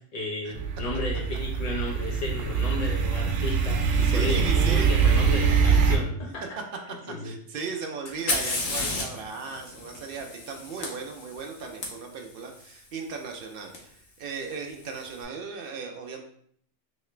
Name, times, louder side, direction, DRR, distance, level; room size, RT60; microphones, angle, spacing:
voice 1, 0.1-6.4 7.1-7.3, left 2 dB, 35° left, -2 dB, 0.9 m, -34 dB
sound 1, 0.5-6.0, right 5 dB, 90° right, 1.0 m, -23 dB
voice 2, 3.7-5.0 7.1-16.2, right 5 dB, 60° right, 2 dB, 0.6 m, -37 dB
Fire, 8.1-11.9 13.7-13.8 14.7-15.1, left 2 dB, 90° left, 1.2 m, -32 dB
3.2 x 2.8 x 3.2 m, 0.64 s
omnidirectional pair, 1.3 m